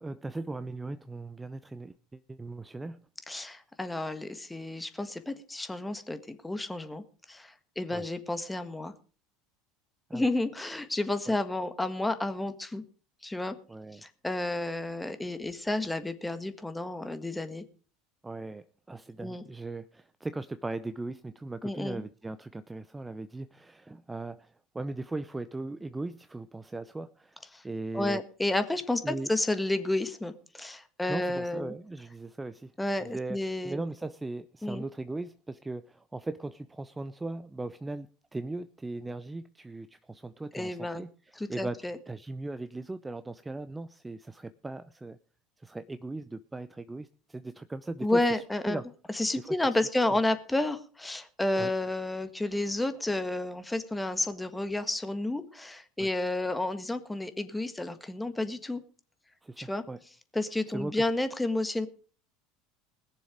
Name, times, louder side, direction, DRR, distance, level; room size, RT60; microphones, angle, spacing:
voice 1, 0.0-3.0 7.9-8.1 10.1-10.3 11.3-11.4 13.7-14.1 18.2-28.2 29.0-29.3 31.1-33.4 33.6-45.2 45.6-48.9 49.4-49.6 51.6-51.7 56.0-56.1 59.4-60.0 60.7-61.1, right 2 dB, 15° right, 12 dB, 0.7 m, -38 dB
voice 2, 3.3-8.9 10.1-12.8 13.2-13.6 13.9-17.6 19.2-19.4 21.6-22.0 27.5-27.6 27.9-31.7 32.8-33.8 34.6-34.8 40.5-41.0 41.4-42.0 48.0-48.8 49.1-58.8 59.6-59.8 60.3-61.9, left 2 dB, 10° left, 10 dB, 1.6 m, -31 dB
20.5 x 7.2 x 5.1 m, 0.40 s
hypercardioid pair, 80°, 0 cm